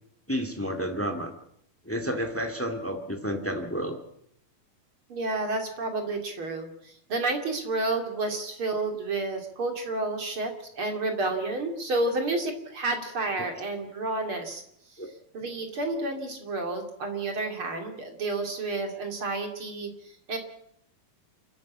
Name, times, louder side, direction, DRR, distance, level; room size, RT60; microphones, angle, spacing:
voice 1, 0.3-1.3 1.8-4.0 15.0-15.1, equal, 5° left, 6 dB, 1.0 m, -30 dB
voice 2, 5.1-14.6 15.3-20.4, right 2 dB, 40° right, 4 dB, 3.0 m, -30 dB
29.5 x 11.0 x 8.5 m, 0.73 s
omnidirectional pair, 4.0 m